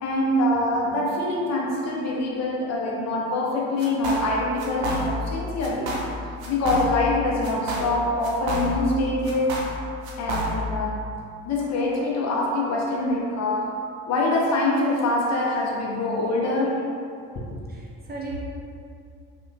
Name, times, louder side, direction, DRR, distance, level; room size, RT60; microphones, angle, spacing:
voice 1, 0.0-6.0 6.5-9.5 10.2-11.1 11.4-16.8, left 2 dB, 40° left, -2 dB, 0.6 m, -24 dB
sound 1, 3.8-4.3 4.6-5.3 5.6-6.1 6.4-7.1 7.4-8.9 9.2-10.8, equal, 80° right, 0.6 m, -29 dB
voice 2, 17.7-18.4, right 2 dB, 25° right, -5 dB, 0.6 m, -36 dB
2.7 x 2.1 x 2.5 m, 2.5 s
figure-of-eight pair, 50°, 41 cm